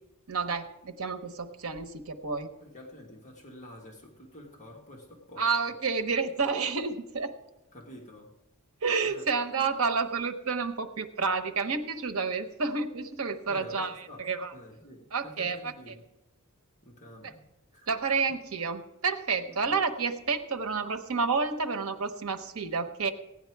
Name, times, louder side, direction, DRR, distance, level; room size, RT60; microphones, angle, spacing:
voice 1, 0.3-2.5 5.4-7.3 8.8-14.5 15.1-15.7 17.2-17.3 17.9-23.1, right 4 dB, 70° right, 7 dB, 0.9 m, -30 dB
voice 2, 2.6-5.7 7.7-8.3 9.0-9.3 13.5-16.1 16.8-17.4 17.7-17.9 18.3-18.4 19.5-19.7, left 1 dB, 35° left, -1 dB, 1.6 m, -49 dB
15.5 x 9.6 x 4.6 m, 0.97 s
head